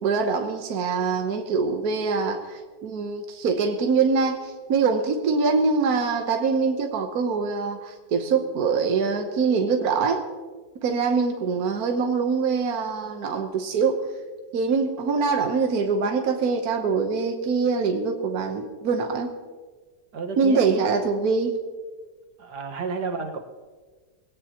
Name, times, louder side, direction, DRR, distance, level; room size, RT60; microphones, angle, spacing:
voice 1, 0.0-10.2 10.8-14.0 14.5-19.3 20.4-21.6, right 5 dB, 65° right, 4 dB, 1.5 m, -24 dB
voice 2, 20.1-20.6 22.4-23.4, right 4 dB, 85° right, 4 dB, 2.0 m, -31 dB
21.0 x 17.0 x 2.9 m, 1.4 s
omnidirectional pair, 1.7 m